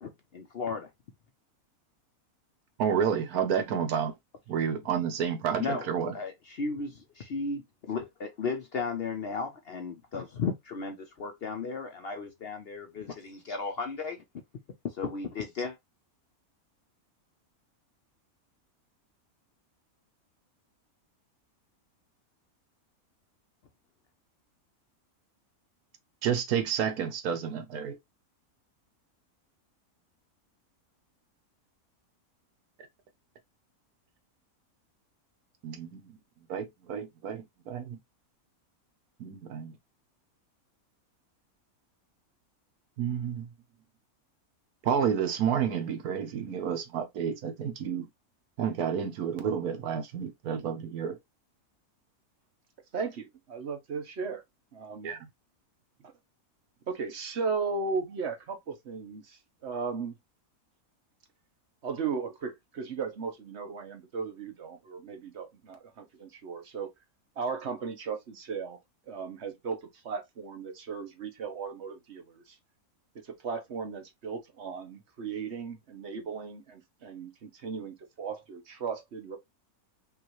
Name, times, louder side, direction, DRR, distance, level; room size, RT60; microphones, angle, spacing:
voice 1, 0.0-0.9 5.6-5.9 6.1-14.2 15.0-15.8, left 4 dB, 55° left, 0.7 m, -35 dB
voice 2, 2.8-4.1 4.5-6.1 26.2-28.0 35.6-36.1 36.5-38.0 39.2-39.8 43.0-43.5 44.8-48.1 48.6-51.2 55.0-55.3, right 7 dB, 80° right, 1.3 m, -30 dB
voice 3, 52.9-54.4 54.7-55.1 56.9-60.1 61.8-66.9 67.4-68.8 69.1-72.6 73.1-79.4, right 5 dB, 50° right, 1.1 m, -36 dB
5.4 x 2.5 x 3.0 m
omnidirectional pair, 1.6 m